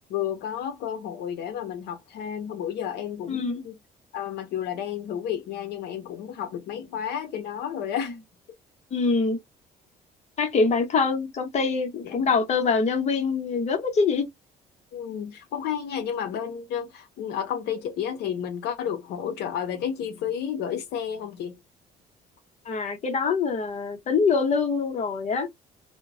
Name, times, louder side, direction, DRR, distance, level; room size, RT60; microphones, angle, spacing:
voice 1, 0.1-3.8 4.1-8.2 12.0-12.2 14.9-21.6, left 9 dB, 75° left, 0.6 m, -31 dB
voice 2, 3.3-3.6 8.9-9.4 10.4-14.3 22.7-25.5, left 4 dB, 40° left, 0.8 m, -24 dB
2.1 x 2.0 x 3.6 m
cardioid pair, 110°, 17 cm